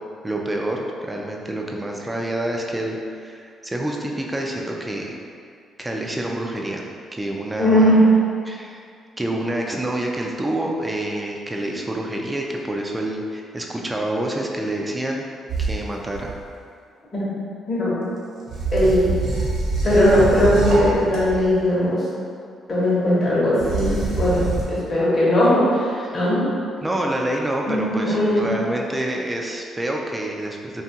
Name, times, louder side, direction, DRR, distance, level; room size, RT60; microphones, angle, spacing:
voice 1, 0.2-5.2 5.8-6.8 7.1-7.9 8.5-8.8 9.2-15.3 15.6-16.3 26.0-26.2 26.8-30.8, right 1 dB, 15° right, 0 dB, 0.3 m, -27 dB
voice 2, 7.6-8.1 17.1-17.3 17.7-18.1 18.7-19.1 19.8-22.0 22.7-26.4 27.7-28.4, equal, 40° left, -8 dB, 0.9 m, -18 dB
sound 1, 15.5-16.5 18.5-21.5 23.6-24.6, right 3 dB, 50° right, 0.8 m, -25 dB
2.7 x 2.3 x 2.7 m, 2.3 s
cardioid pair, 90°, 0 cm